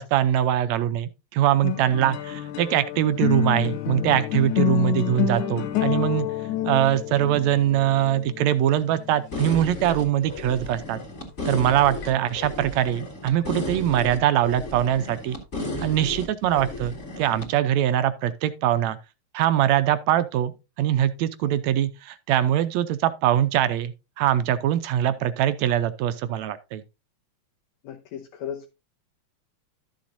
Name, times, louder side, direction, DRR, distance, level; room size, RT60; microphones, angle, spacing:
voice 1, 0.0-6.3 6.7-11.0 11.5-15.4 15.8-19.0 19.3-20.5 20.8-26.8, right 11 dB, 75° right, 1.8 m, -22 dB
sound 1, 1.6-10.6 11.5-12.4, left 12 dB, 90° left, 2.6 m, -29 dB
sound 2, 9.3-17.5, left 2 dB, 25° left, 2.5 m, -34 dB
voice 2, 27.8-28.7, left 9 dB, 75° left, 2.2 m, -37 dB
13.0 x 7.2 x 2.6 m
omnidirectional pair, 3.4 m